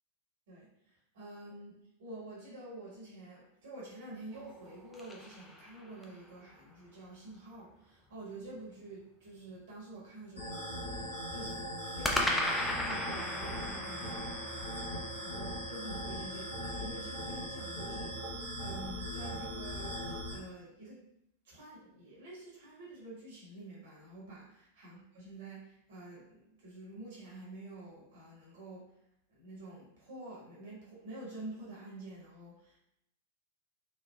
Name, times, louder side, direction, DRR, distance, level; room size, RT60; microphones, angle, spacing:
voice 1, 0.5-21.0 21.4-28.9 29.3-32.8, right 2 dB, 60° right, -6 dB, 1.1 m, -48 dB
sound 1, 4.3-6.2 12.0-16.3, left 1 dB, 5° left, 0.3 m, -36 dB
sound 2, 10.3-20.3, equal, 75° left, 0.8 m, -40 dB
3.2 x 2.0 x 2.2 m, 0.79 s
figure-of-eight pair, 90°, 0 cm